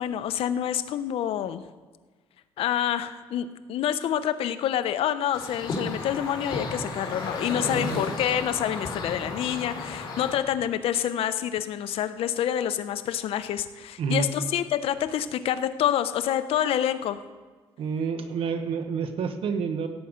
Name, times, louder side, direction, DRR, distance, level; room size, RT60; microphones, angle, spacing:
voice 1, 0.0-1.6 2.6-17.2, left 10 dB, 75° left, 12 dB, 0.6 m, -27 dB
sound 1, 5.3-10.4, left 3 dB, 50° left, 2.9 m, -33 dB
voice 2, 7.6-8.1 14.0-14.3 17.8-19.9, right 5 dB, 70° right, 8 dB, 1.0 m, -29 dB
16.5 x 7.9 x 5.1 m, 1.4 s
cardioid pair, 145°, 10 cm